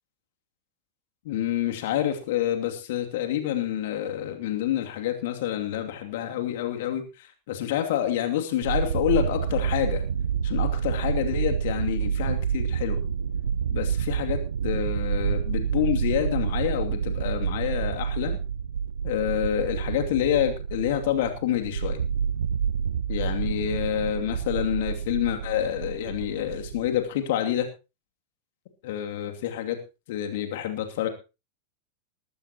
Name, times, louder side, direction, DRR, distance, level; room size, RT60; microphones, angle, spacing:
voice 1, 1.2-7.0 7.5-10.0 10.4-13.0 13.7-18.4 19.0-22.0 23.1-27.7 28.8-29.8 30.1-31.1, left 11 dB, 55° left, 5 dB, 2.7 m, -28 dB
sound 1, 8.6-27.0, right 7 dB, 70° right, 0.7 m, -28 dB
19.5 x 14.0 x 3.0 m, 0.30 s
figure-of-eight pair, 90°, 0 cm